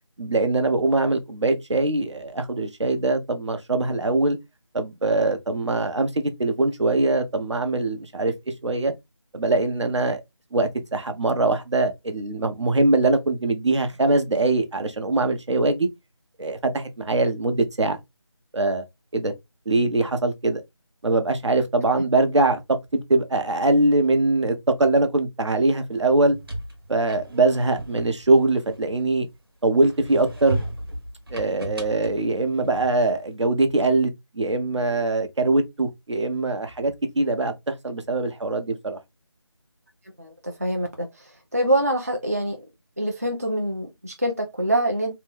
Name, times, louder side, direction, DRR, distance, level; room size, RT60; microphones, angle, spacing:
voice 1, 0.2-4.4 4.7-8.3 8.6-8.9 9.3-10.2 10.5-15.9 16.4-18.0 18.5-18.8 19.1-19.3 19.7-20.6 21.0-22.6 23.1-26.4 26.9-29.3 29.6-30.6 31.3-39.0, right 2 dB, 75° right, 0.9 m, -22 dB
sound 1, 26.1-29.3 29.8-33.2, right 2 dB, 50° right, 1.1 m, -36 dB
voice 2, 40.2-41.1 41.5-42.6 43.0-45.1, right 1 dB, 35° right, 0.4 m, -25 dB
2.9 x 2.2 x 3.2 m
figure-of-eight pair, 175°, 15 cm